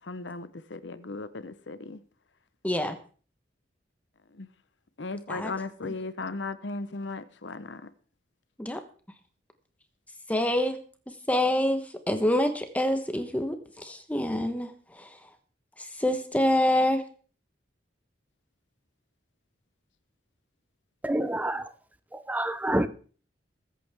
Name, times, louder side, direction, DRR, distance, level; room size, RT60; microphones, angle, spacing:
voice 1, 0.1-2.0 4.4-4.5 5.0-7.8, left 3 dB, 85° left, 0.9 m, -36 dB
voice 2, 2.6-3.0 5.3-5.5 5.8-5.9 8.6-8.8 10.3-10.8 11.3-11.8 12.1-14.7 15.0-15.1 16.0-17.0, left 1 dB, 10° left, 1.1 m, -26 dB
voice 3, 21.0-21.6 22.3-22.9, right 1 dB, 10° right, 0.5 m, -27 dB
21.0 x 8.4 x 3.5 m
head